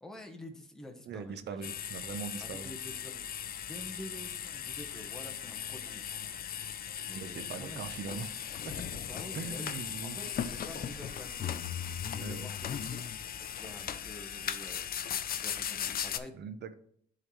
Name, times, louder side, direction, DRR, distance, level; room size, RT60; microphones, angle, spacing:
voice 1, 0.0-1.7 2.4-3.3 3.6-6.2 7.0-7.8 9.0-9.7 10.0-11.6 12.0-13.0 13.6-14.9 15.3-16.4, left 1 dB, 5° left, 3 dB, 1.0 m, -48 dB
voice 2, 1.1-2.7 7.1-8.3 8.8-8.9 9.3-10.2 12.2-12.5 16.3-16.7, right 6 dB, 60° right, 11 dB, 0.7 m, -41 dB
sound 1, 1.6-16.2, left 9 dB, 50° left, 0.5 m, -38 dB
sound 2, 5.5-11.4, left 1 dB, 30° right, 2.4 m, -63 dB
11.0 x 3.9 x 3.1 m, 0.64 s
cardioid pair, 90°, 20 cm